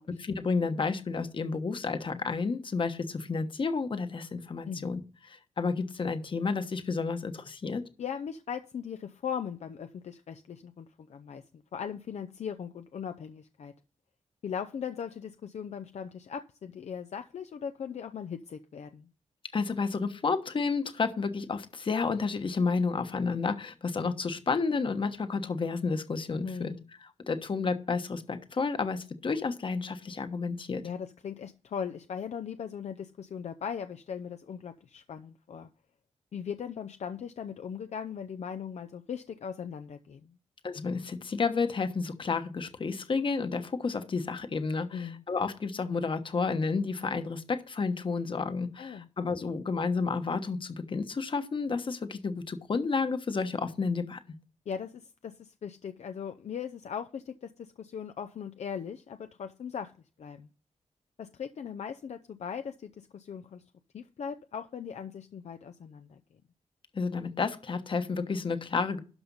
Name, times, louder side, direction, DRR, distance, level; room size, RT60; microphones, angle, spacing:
voice 1, 0.2-5.0 5.3-7.8 19.5-26.7 27.3-30.8 40.6-54.2 66.9-69.0, left 4 dB, 45° left, 9 dB, 1.2 m, -31 dB
voice 2, 4.7-5.0 8.0-11.4 11.7-13.7 14.4-19.1 26.4-26.9 30.8-35.7 36.3-40.3 44.9-45.2 48.8-49.1 54.7-59.9 60.2-60.5 61.2-63.6 63.9-66.2, left 7 dB, 65° left, 8 dB, 0.6 m, -39 dB
12.0 x 5.1 x 5.5 m, 0.37 s
wide cardioid pair, 130°, 12 cm